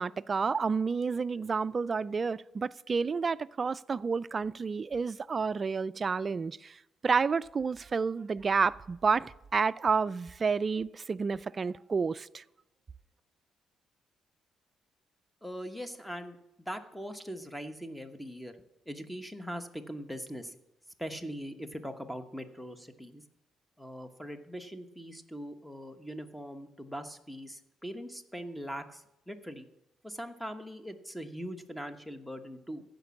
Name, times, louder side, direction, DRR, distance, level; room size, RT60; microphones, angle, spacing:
voice 1, 0.0-12.4, right 5 dB, 35° right, 0.3 m, -30 dB
voice 2, 15.4-18.6 18.9-20.5 21.0-23.2 23.8-29.7 30.0-32.8, equal, 5° left, 1.1 m, -41 dB
15.0 x 5.2 x 7.0 m
cardioid pair, 90°, 0 cm